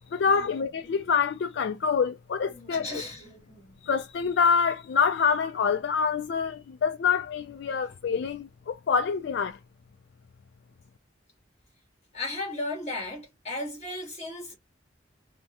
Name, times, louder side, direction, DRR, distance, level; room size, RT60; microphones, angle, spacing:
voice 1, 0.1-2.9 3.8-9.6, left 6 dB, 60° left, 0.3 m, -26 dB
voice 2, 2.5-3.8 12.1-14.5, left 2 dB, 35° left, 1.7 m, -36 dB
3.4 x 2.0 x 2.8 m
head